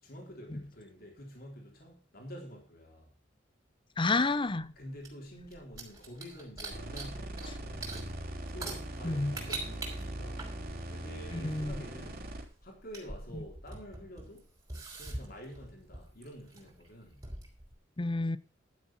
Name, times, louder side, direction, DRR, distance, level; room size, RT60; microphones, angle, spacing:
voice 1, 0.0-3.1 4.8-8.2 8.5-10.5 10.9-12.3 12.6-14.5 14.9-17.3, equal, 55° left, 3.9 m, -48 dB
voice 2, 4.0-4.7 9.0-9.3 11.3-11.7 18.0-18.4, left 3 dB, 25° left, 0.6 m, -29 dB
sound 1, 4.3-7.5 7.8-17.7, right 2 dB, 20° right, 5.0 m, -45 dB
sound 2, 6.7-12.4, right 1 dB, 50° right, 3.5 m, -41 dB
12.5 x 7.8 x 5.8 m
head